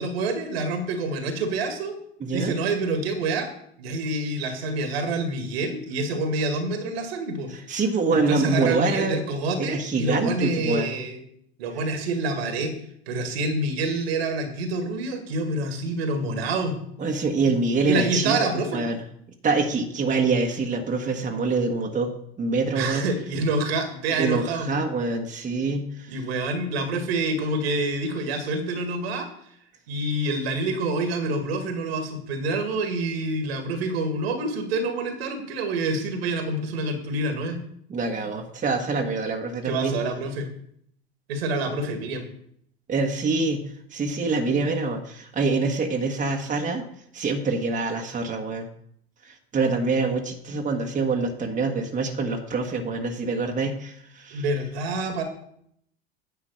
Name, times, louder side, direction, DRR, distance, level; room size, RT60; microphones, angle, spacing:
voice 1, 0.0-2.0 2.3-3.5 3.8-7.5 8.3-11.2 11.6-12.7 13.1-16.8 17.9-18.8 22.7-24.7 26.1-29.3 29.9-37.6 39.6-40.5 41.3-42.2 54.3-55.2, right 2 dB, 70° right, 5 dB, 1.9 m, -27 dB
voice 2, 2.2-2.5 7.7-9.2 9.6-10.9 17.0-18.4 18.7-18.9 19.4-22.1 22.4-23.1 24.2-26.2 37.9-39.9 42.9-43.6 43.9-46.8 47.1-48.7 49.2-54.4, right 3 dB, 25° right, 2 dB, 1.4 m, -25 dB
9.9 x 5.5 x 5.7 m, 0.68 s
figure-of-eight pair, 75°, 32 cm